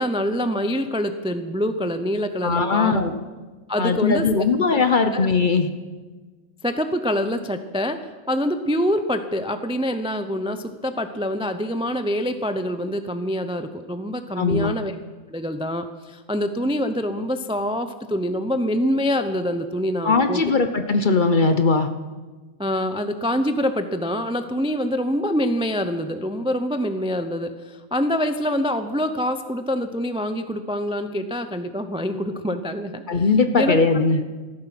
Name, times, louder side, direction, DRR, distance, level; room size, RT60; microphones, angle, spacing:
voice 1, 0.0-3.1 3.7-4.5 5.1-5.3 6.6-8.0 8.3-14.9 15.3-20.4 22.6-33.2 33.6-33.8 34.1-34.2, equal, 5° right, 9 dB, 0.4 m, -25 dB
voice 2, 2.4-3.1 3.8-5.7 14.4-14.7 20.0-21.9 33.1-34.2, left 4 dB, 45° left, 8 dB, 0.8 m, -19 dB
15.0 x 13.5 x 6.0 m, 1.3 s
omnidirectional pair, 1.4 m